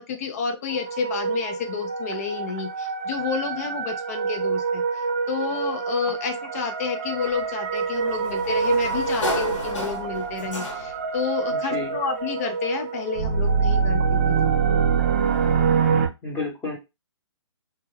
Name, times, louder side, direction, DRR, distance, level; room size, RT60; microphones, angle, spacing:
voice 1, 0.0-4.8 5.3-14.6, left 6 dB, 35° left, 5 dB, 0.5 m, -30 dB
sound 1, 0.7-16.1, right 6 dB, 25° right, 0.4 m, -25 dB
Sliding door, 7.2-11.1, left 1 dB, 90° left, 1.1 m, -33 dB
voice 2, 11.5-12.0 16.2-16.8, left 3 dB, 10° left, -4 dB, 0.9 m, -31 dB
2.3 x 2.1 x 3.1 m, 0.23 s
hypercardioid pair, 155°, 15 cm